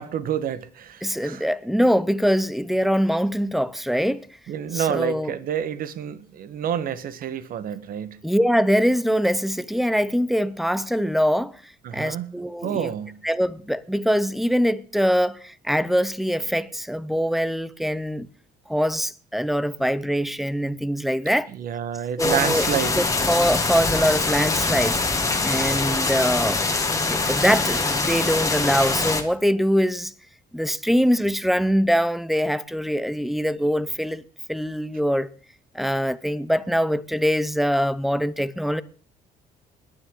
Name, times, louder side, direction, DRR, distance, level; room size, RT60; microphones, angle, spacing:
voice 1, 0.0-1.5 4.5-8.2 11.8-12.3 12.6-13.2 21.5-23.0, right 9 dB, 60° right, 1.2 m, -28 dB
voice 2, 1.0-4.3 4.7-5.3 8.2-12.9 13.2-18.3 18.7-21.5 22.2-22.7 23.0-25.0 25.4-26.6 27.1-30.1 30.5-34.2 34.5-35.3 35.7-38.8, equal, ahead, 0.7 m, -23 dB
sound 1, 22.2-29.2, left 3 dB, 20° left, 1.8 m, -23 dB
20.5 x 10.0 x 3.8 m
cardioid pair, 110°, 17 cm